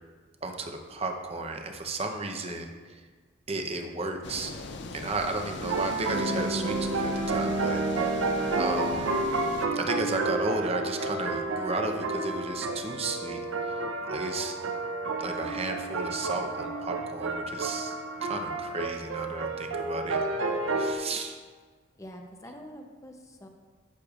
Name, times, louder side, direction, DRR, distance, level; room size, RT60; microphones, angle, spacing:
voice 1, 0.4-3.0 3.5-4.6 4.9-8.1 8.6-9.1 9.7-13.4 14.1-14.6 15.2-17.9 18.2-20.2 20.8-21.4, right 2 dB, 30° right, 4 dB, 0.7 m, -33 dB
sound 1, 4.2-9.7, left 3 dB, 60° left, 0.5 m, -40 dB
sound 2, 5.6-20.9, right 2 dB, 80° right, 0.7 m, -30 dB
voice 2, 22.0-23.5, equal, 15° left, 3 dB, 0.6 m, -45 dB
13.5 x 6.8 x 2.4 m, 1.5 s
head